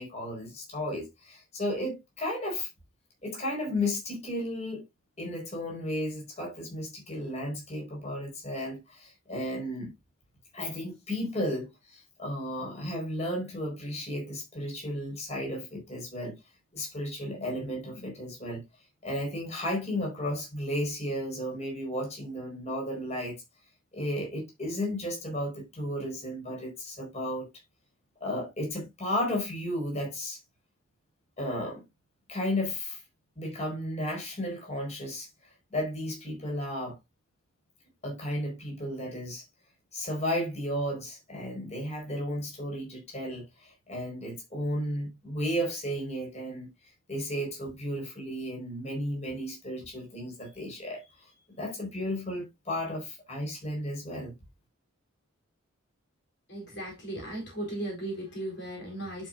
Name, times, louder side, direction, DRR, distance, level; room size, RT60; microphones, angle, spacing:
voice 1, 0.0-2.7 3.2-4.8 5.2-9.9 10.5-16.4 16.7-18.6 19.0-23.4 23.9-27.5 28.2-30.4 31.4-31.8 32.3-33.0 33.4-35.3 35.7-37.0 38.0-39.4 39.9-46.7 47.1-54.3, left 1 dB, 30° left, 4.6 m, -34 dB
voice 2, 56.5-59.3, right 1 dB, 55° left, 4.1 m, -36 dB
11.0 x 5.6 x 2.5 m
head